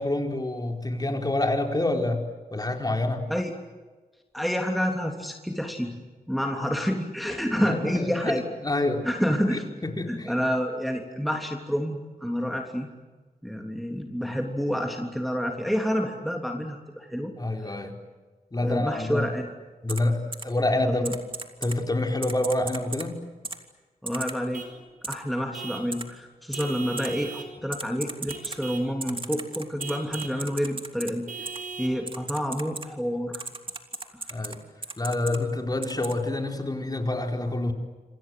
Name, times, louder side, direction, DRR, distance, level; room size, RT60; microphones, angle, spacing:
voice 1, 0.0-2.2 2.5-3.3 7.5-9.1 9.5-10.3 17.4-18.0 18.5-19.3 19.8-21.0 21.6-23.2 34.3-34.6 35.0-37.7, left 2 dB, 25° left, 3 dB, 4.6 m, -27 dB
voice 2, 4.3-5.9 6.3-8.4 9.0-9.6 10.1-12.9 13.4-17.3 18.6-19.5 20.9-21.1 24.0-24.6 25.1-31.5 31.8-33.5 34.1-34.2, equal, ahead, 2 dB, 3.2 m, -28 dB
Typing, 19.9-20.0 20.3-20.4 21.0-21.8 22.2-23.1 23.4-23.6 24.1-24.3 25.0-25.1 25.9-26.0 26.5-26.6 27.0-27.1 27.7-28.6 29.0-31.1 31.5-31.6 32.1-32.9 33.3-34.6 34.8-35.4 35.8-36.1, right 3 dB, 35° right, 3.0 m, -35 dB
Vehicle horn car horn honking / Truck, 24.5-24.8 25.5-25.9 26.5-27.5 28.3-28.9 29.8-30.4 31.3-32.0, right 5 dB, 70° right, 5.9 m, -39 dB
27.0 x 27.0 x 7.8 m, 1.3 s
wide cardioid pair, 75°, 15 cm